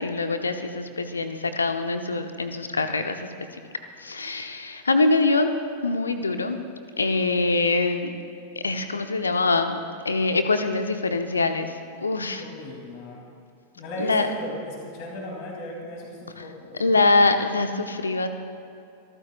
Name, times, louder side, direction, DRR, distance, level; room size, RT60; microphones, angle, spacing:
voice 1, 0.0-3.3 4.0-5.5 5.8-6.6 7.0-8.1 8.6-9.8 10.0-12.4 14.0-14.3 16.4-16.5 16.8-18.3, left 3 dB, 75° left, 8 dB, 1.0 m, -24 dB
voice 2, 12.4-13.2 13.8-16.8, left 1 dB, 45° left, -1 dB, 3.2 m, -36 dB
28.0 x 14.0 x 2.6 m, 2.6 s
figure-of-eight pair, 90°, 0 cm